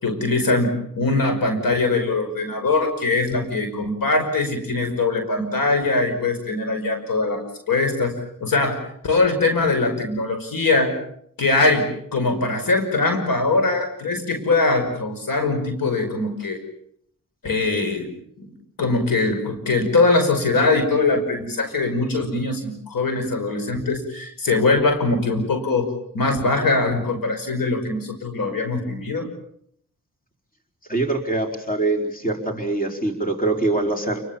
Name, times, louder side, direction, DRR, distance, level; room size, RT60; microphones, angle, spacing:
voice 1, 0.0-10.9 11.4-16.6 17.4-18.1 18.4-18.5 18.8-29.3, left 3 dB, 80° left, 6 dB, 5.6 m, -22 dB
voice 2, 30.9-34.2, right 2 dB, 25° left, 3 dB, 4.7 m, -23 dB
29.0 x 22.0 x 7.3 m, 0.69 s
cardioid pair, 70°, 34 cm